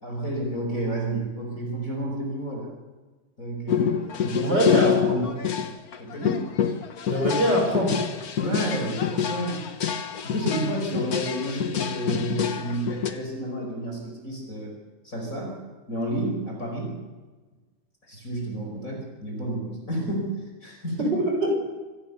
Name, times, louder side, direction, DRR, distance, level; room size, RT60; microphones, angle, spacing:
voice 1, 0.0-2.7 3.4-4.6 5.1-5.3 6.0-6.5 8.4-9.6 10.2-14.7 15.0-15.6 15.9-17.0 18.1-20.3 20.6-21.1, right 1 dB, 25° left, 0 dB, 5.2 m, -30 dB
sound 1, 3.7-13.1, left 8 dB, 70° left, 0.8 m, -27 dB
voice 2, 4.4-5.3 7.1-8.0 21.0-21.5, equal, 30° right, 0 dB, 6.8 m, -23 dB
25.5 x 17.5 x 7.1 m, 1.3 s
omnidirectional pair, 3.5 m